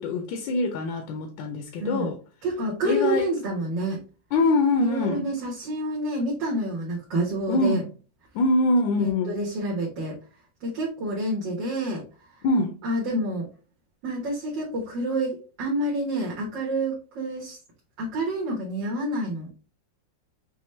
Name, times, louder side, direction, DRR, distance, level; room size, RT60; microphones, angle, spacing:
voice 1, 0.0-2.2 2.8-3.3 4.3-5.3 7.5-7.9 8.3-9.3 12.4-12.8, left 2 dB, 80° left, 1.4 m, -24 dB
voice 2, 1.8-2.1 2.4-4.0 4.8-7.8 9.0-10.2 10.6-12.0 12.4-12.5 12.8-13.5 14.0-17.6 18.0-19.5, right 1 dB, 75° right, 2.0 m, -28 dB
6.0 x 2.1 x 3.2 m
omnidirectional pair, 2.0 m